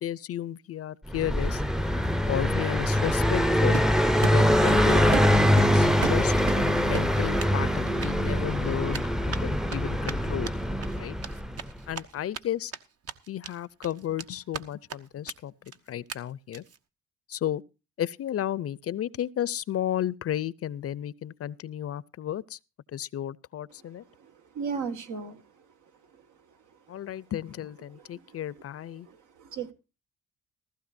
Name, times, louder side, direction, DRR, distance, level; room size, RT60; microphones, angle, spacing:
voice 1, 0.0-1.6 2.3-3.8 4.3-10.5 11.0-11.1 11.9-12.7 13.3-15.5 15.9-16.6 17.3-17.6 18.0-22.6 22.9-24.0 26.9-29.1, left 11 dB, 50° left, 0.5 m, -33 dB
Car passing by, 1.1-11.7, equal, ahead, 0.6 m, -23 dB
Run, 3.7-4.8 5.1-6.6 6.9-7.6 7.9-8.1 8.9-12.4 12.7-12.8 13.1-13.5 13.8-14.6 14.9-15.0 15.3-15.4 15.7-15.8 16.1-16.2 16.5-16.8, right 7 dB, 50° right, 1.1 m, -36 dB
voice 2, 24.2-25.4 28.1-28.4 29.1-29.7, right 5 dB, 80° right, 1.9 m, -36 dB
16.0 x 14.5 x 2.6 m
cardioid pair, 90°, 30 cm